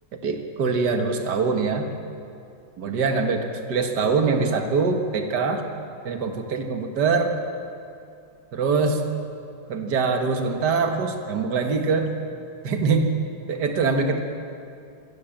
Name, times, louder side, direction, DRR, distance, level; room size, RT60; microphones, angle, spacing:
voice 1, 0.2-1.9 2.8-3.4 3.7-5.6 6.0-7.3 8.5-9.0 9.7-12.1 12.6-13.1 13.5-14.2, right 4 dB, 65° right, 5 dB, 2.1 m, -23 dB
24.0 x 15.5 x 7.4 m, 2.5 s
omnidirectional pair, 2.0 m